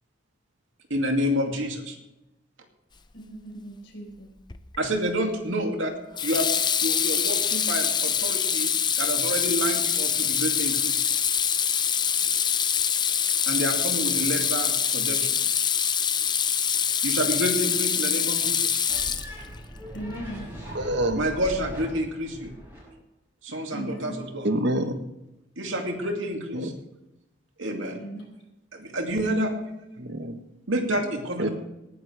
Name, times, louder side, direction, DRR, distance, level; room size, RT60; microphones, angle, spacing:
voice 1, 0.9-2.0 4.8-5.9 6.2-6.5 6.8-8.7 9.0-11.1 13.5-15.4 17.0-18.8 21.2-22.5 23.4-24.5 25.6-26.7 27.6-28.0 28.7-29.5 30.7-31.5, equal, 85° right, 2 dB, 2.5 m, -28 dB
voice 2, 3.1-4.3 19.9-20.5 23.7-24.1 28.0-28.3, right 1 dB, 65° left, 1 dB, 4.5 m, -38 dB
Water tap faucet / Sink (filling or washing), 4.5-4.9 6.2-19.6, left 7 dB, 25° left, 0.6 m, -24 dB
sound 1, 18.9-22.9, equal, 10° right, 6.2 m, -40 dB
voice 3, 20.7-21.2 24.4-25.0 26.5-26.7 30.0-30.4 31.4-31.5, right 1 dB, 60° right, 7 dB, 1.2 m, -26 dB
19.0 x 10.5 x 3.4 m, 0.93 s
head